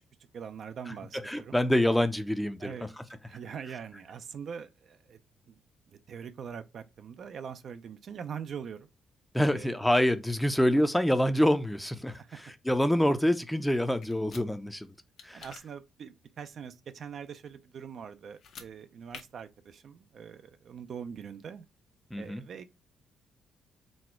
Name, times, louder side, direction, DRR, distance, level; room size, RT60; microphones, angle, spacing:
voice 1, 0.3-1.6 2.6-5.2 5.5-5.6 5.9-8.9 9.4-9.8 12.1-12.4 15.3-21.7 22.2-22.7, right 7 dB, 60° right, 0.5 m, -43 dB
voice 2, 1.2-2.9 9.3-14.9 15.2-15.4 22.1-22.4, left 1 dB, 5° left, 0.5 m, -26 dB
sound 1, 14.0-14.4 15.2-15.6 18.3-18.7 19.1-19.2, left 6 dB, 70° left, 0.8 m, -47 dB
4.2 x 2.2 x 4.3 m
cardioid pair, 90°, 0 cm